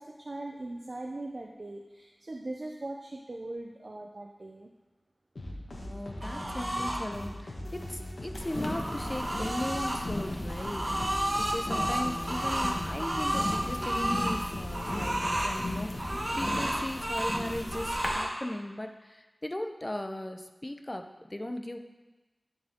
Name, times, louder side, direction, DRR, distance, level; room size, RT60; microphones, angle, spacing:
voice 1, 0.0-4.7, right 2 dB, 60° right, 1 dB, 0.6 m, -40 dB
sound 1, 5.4-17.0, left 1 dB, 80° left, 1.8 m, -41 dB
voice 2, 5.7-21.8, left 1 dB, 30° left, 5 dB, 0.7 m, -38 dB
sound 2, 6.2-7.0 8.4-10.0 10.5-14.4 14.7-15.6 16.0-17.4 17.7-18.3, right 1 dB, 40° right, 1.4 m, -32 dB
sound 3, 8.3-18.1, left 1 dB, 55° left, 1.3 m, -37 dB
13.5 x 5.2 x 3.6 m, 1.2 s
wide cardioid pair, 50°, 0 cm